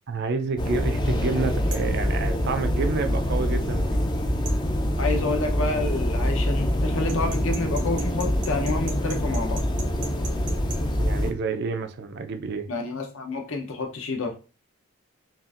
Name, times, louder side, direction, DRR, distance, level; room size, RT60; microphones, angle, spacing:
voice 1, 0.1-4.1 11.0-12.7, right 4 dB, 50° right, 0.4 m, -29 dB
sound 1, 0.6-11.3, equal, 20° left, 0.4 m, -25 dB
sound 2, 1.7-2.0 4.5-4.6 7.1-10.8, right 4 dB, 90° right, 0.8 m, -39 dB
voice 2, 5.0-9.6 12.7-14.3, left 2 dB, 60° left, 0.7 m, -29 dB
5.4 x 2.5 x 2.4 m
head